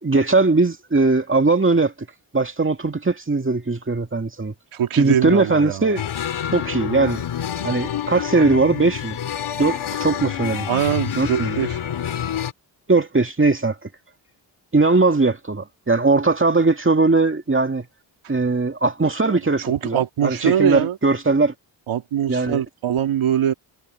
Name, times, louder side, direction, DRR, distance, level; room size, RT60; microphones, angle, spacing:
voice 1, 0.0-1.9 2.3-4.5 5.0-6.0 6.5-7.2 7.6-9.2 9.6-10.7 11.2-11.6 12.9-13.9 14.7-17.9 18.3-21.5 22.3-22.6, right 3 dB, 25° right, 2.2 m, -19 dB
voice 2, 4.7-5.9 10.7-11.8 19.2-19.3 19.6-21.0 21.9-23.5, right 9 dB, 90° right, 2.6 m, -22 dB
sound 1, 6.0-12.5, left 9 dB, 85° left, 4.6 m, -28 dB
cardioid pair, 75°, 47 cm